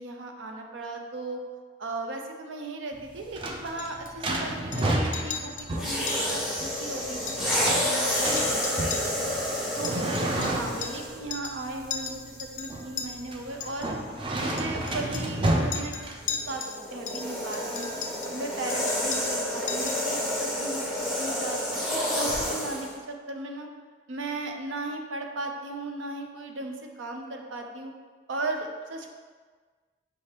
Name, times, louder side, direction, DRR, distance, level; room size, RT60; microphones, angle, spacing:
voice 1, 0.0-1.4 1.8-9.2 9.8-13.9 14.4-15.9 16.3-16.6 16.9-17.9 18.2-23.7 24.1-27.9 28.3-29.1, right 2 dB, 80° right, 3 dB, 0.5 m, -36 dB
sound 1, 2.9-16.6, right 1 dB, 25° right, 0.4 m, -31 dB
Chink clink, 3.8-4.4 4.7-4.9 5.1-5.7 6.1-6.4 6.7-6.8 7.1-7.9 8.1-11.1 11.3-11.6 11.9-13.1 13.6-13.9 14.6-16.8 17.1-18.4 18.7-19.4 19.7-20.1, left 6 dB, 40° left, 0.4 m, -37 dB
sound 2, 5.7-11.2 12.1-12.3 16.2-22.9, left 1 dB, ahead, 0.7 m, -29 dB
5.4 x 3.2 x 2.9 m, 1.5 s
head